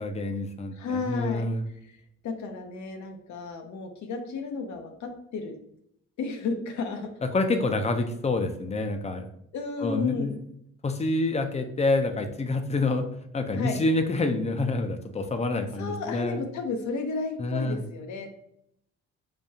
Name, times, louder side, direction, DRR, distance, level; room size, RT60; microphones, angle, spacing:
voice 1, 0.0-1.6 7.3-9.3 9.8-10.4 10.8-13.1 13.3-16.4 17.4-17.8, left 2 dB, 20° left, 7 dB, 0.5 m, -27 dB
voice 2, 0.7-1.4 2.2-5.6 6.2-7.1 9.5-10.3 13.5-13.8 15.8-18.3, left 4 dB, 70° left, 5 dB, 0.7 m, -33 dB
5.1 x 2.3 x 2.7 m, 0.73 s
cardioid pair, 90°, 30 cm